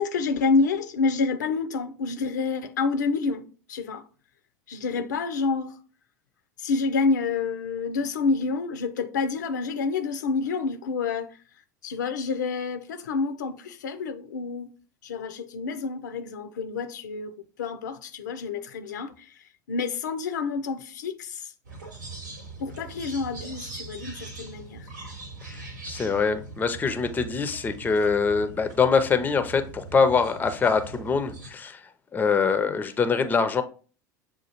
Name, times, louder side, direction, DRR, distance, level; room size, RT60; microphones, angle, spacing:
voice 1, 0.0-4.0 4.7-5.8 6.6-11.3 11.8-14.7 15.0-17.3 17.6-19.3 19.7-21.5 22.6-24.9, left 4 dB, 70° left, 0.5 m, -28 dB
sound 1, 21.6-31.5, right 3 dB, 75° right, 1.0 m, -41 dB
voice 2, 25.8-31.8 32.1-33.6, left 5 dB, 20° left, 0.5 m, -24 dB
7.0 x 2.4 x 2.8 m
figure-of-eight pair, 75°, 10 cm